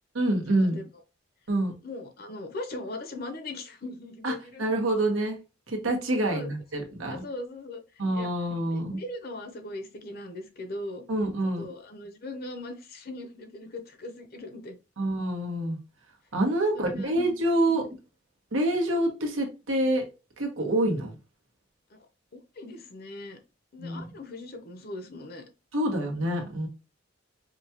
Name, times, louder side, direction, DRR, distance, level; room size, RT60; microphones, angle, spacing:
voice 1, 0.1-0.8 1.5-1.7 4.2-5.4 5.7-7.2 8.0-9.0 11.1-11.6 15.0-15.8 16.3-17.8 18.5-20.1 20.4-21.2 23.8-24.1 25.7-26.7, right 1 dB, 85° right, 2 dB, 1.2 m, -27 dB
voice 2, 1.8-4.6 6.2-6.5 7.1-7.8 8.1-8.3 8.7-11.1 11.4-14.7 16.6-17.1 17.7-17.9 21.9-22.0 22.3-23.4 23.7-25.4, left 2 dB, 50° left, 6 dB, 0.7 m, -39 dB
5.1 x 2.3 x 2.8 m, 0.29 s
head